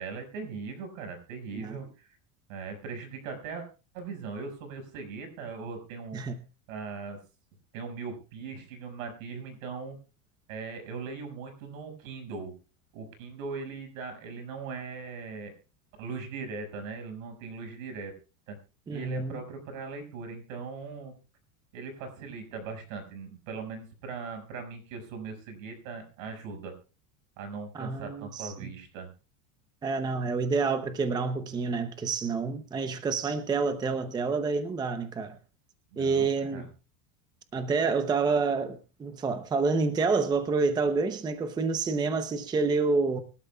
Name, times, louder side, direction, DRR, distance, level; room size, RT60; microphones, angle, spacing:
voice 1, 0.0-2.1 2.5-3.7 3.9-6.2 6.7-7.2 7.7-10.0 10.5-12.5 12.9-15.6 16.0-18.1 18.5-18.6 18.9-21.1 21.7-26.7 27.4-29.1 35.9-36.7, right 4 dB, 75° right, 5.8 m, -39 dB
voice 2, 18.9-19.4 27.8-28.7 29.8-35.4 36.0-36.7 37.5-43.2, right 4 dB, 10° right, 0.7 m, -28 dB
24.5 x 12.0 x 2.3 m
supercardioid pair, 165°, 40 cm